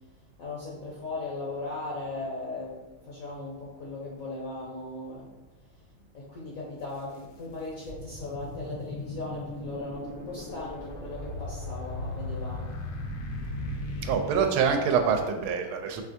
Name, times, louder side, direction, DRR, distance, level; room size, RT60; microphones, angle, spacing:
voice 1, 0.4-2.8 3.0-5.3 6.1-12.7 14.1-14.2, left 2 dB, 65° left, -5 dB, 0.8 m, -38 dB
sound 1, 6.8-6.9 7.5-15.1, left 1 dB, 85° left, 1.5 m, -37 dB
voice 2, 14.0-16.0, right 6 dB, 85° right, 5 dB, 1.4 m, -25 dB
4.8 x 3.4 x 2.6 m, 1.1 s
omnidirectional pair, 2.3 m